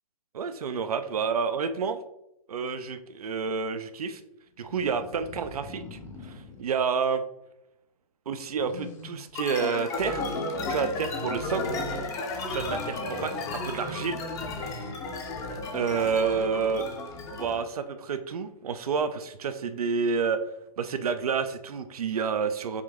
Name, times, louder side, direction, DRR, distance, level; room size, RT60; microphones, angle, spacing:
voice 1, 0.3-2.0 2.5-4.2 4.6-7.2 8.3-10.2 10.6-11.8 12.5-14.2 15.7-16.8 17.3-20.4 20.8-22.8, right 6 dB, 75° right, 9 dB, 0.4 m, -29 dB
sound 1, 4.5-6.7 8.6-9.3 11.8-15.3, left 2 dB, 55° left, 1.1 m, -45 dB
sound 2, 9.3-17.6, left 2 dB, 15° left, 0.6 m, -33 dB
4.9 x 2.6 x 3.5 m, 0.87 s
figure-of-eight pair, 130°, 19 cm